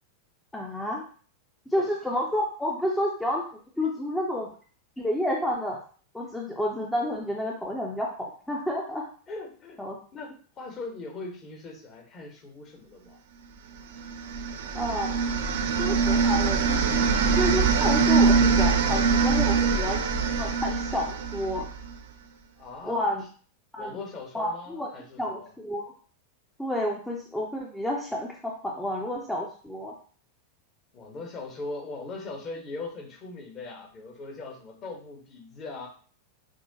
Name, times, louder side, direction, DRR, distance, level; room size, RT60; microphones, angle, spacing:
voice 1, 0.5-1.0 1.7-3.4 3.8-4.5 5.0-5.8 6.1-9.1 9.8-10.0 14.7-15.1 15.8-17.0 17.4-21.7 22.8-23.2 23.7-24.0 24.3-24.9 25.2-25.9 26.6-29.9, left 1 dB, 5° left, -2 dB, 0.6 m, -30 dB
voice 2, 9.3-9.8 10.1-13.2 22.6-23.1 23.8-25.5 30.9-35.9, left 3 dB, 30° left, 1 dB, 1.1 m, -40 dB
sound 1, 14.0-22.0, right 5 dB, 55° right, 0.5 m, -23 dB
6.0 x 2.1 x 2.8 m, 0.42 s
figure-of-eight pair, 90°, 0 cm